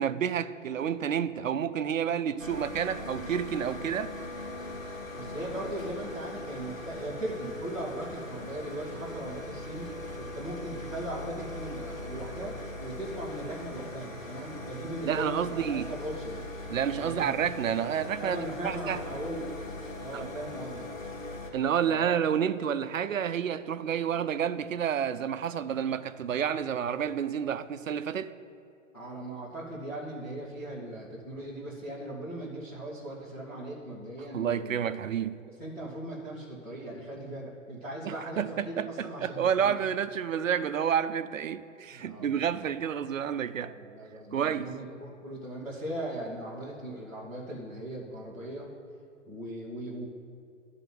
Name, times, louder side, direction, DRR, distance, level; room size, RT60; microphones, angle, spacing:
voice 1, 0.0-4.1 15.0-15.9 16.7-18.4 18.6-19.0 20.1-20.3 21.5-28.3 34.3-35.4 38.0-43.7 44.3-44.7, right 8 dB, 80° right, 0.6 m, -29 dB
sound 1, 2.4-21.5, left 2 dB, 90° left, 2.1 m, -40 dB
voice 2, 5.1-16.4 17.0-17.4 18.2-19.5 19.9-20.9 21.8-22.2 28.9-35.0 35.6-39.7 41.9-42.5 43.5-48.7 49.3-50.1, right 1 dB, 5° left, 0.3 m, -39 dB
11.5 x 4.0 x 7.6 m
figure-of-eight pair, 120°, 39 cm